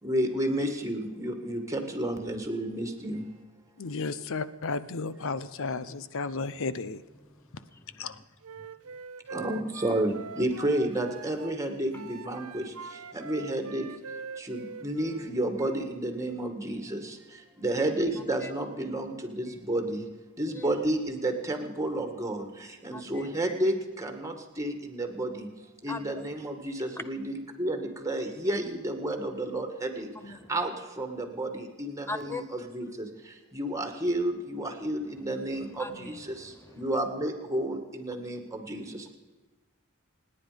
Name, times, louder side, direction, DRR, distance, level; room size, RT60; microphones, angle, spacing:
voice 1, 0.0-3.3 9.3-13.9 14.4-20.1 20.4-25.5 25.8-39.2, right 1 dB, 15° right, 5 dB, 2.0 m, -31 dB
voice 2, 3.8-7.0 8.0-8.2, left 4 dB, 65° left, 15 dB, 0.8 m, -33 dB
voice 3, 7.5-8.1 18.4-18.5 20.5-20.8 22.9-23.3 25.9-26.2 30.1-30.5 32.1-32.5 35.8-36.9, left 3 dB, 10° left, 10 dB, 0.8 m, -41 dB
Wind instrument woodwind instrument, 8.4-11.6 11.9-15.3, right 5 dB, 75° right, 0.7 m, -43 dB
28.0 x 9.9 x 5.2 m, 1.2 s
head